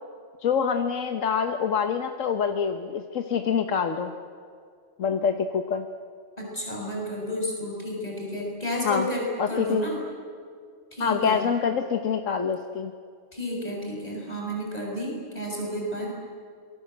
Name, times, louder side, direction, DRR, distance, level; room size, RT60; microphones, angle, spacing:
voice 1, 0.4-4.1 5.0-5.9 8.8-9.1 9.4-9.9 11.0-12.9, left 6 dB, 85° left, 6 dB, 1.5 m, -26 dB
voice 2, 6.4-10.0 10.9-11.5 13.3-16.1, equal, 30° left, -2 dB, 6.8 m, -31 dB
26.5 x 22.5 x 7.9 m, 2.2 s
omnidirectional pair, 1.3 m